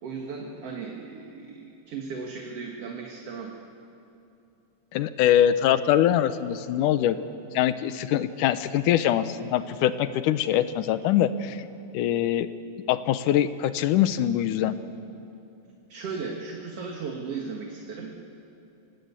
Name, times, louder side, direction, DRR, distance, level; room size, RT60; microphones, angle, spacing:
voice 1, 0.0-3.5 15.9-18.2, right 5 dB, 55° right, 1 dB, 2.3 m, -36 dB
voice 2, 4.9-7.2 7.5-11.6 11.9-12.5 12.9-14.8, left 11 dB, 85° left, 12 dB, 2.3 m, -23 dB
25.0 x 19.0 x 8.3 m, 2.7 s
omnidirectional pair, 3.5 m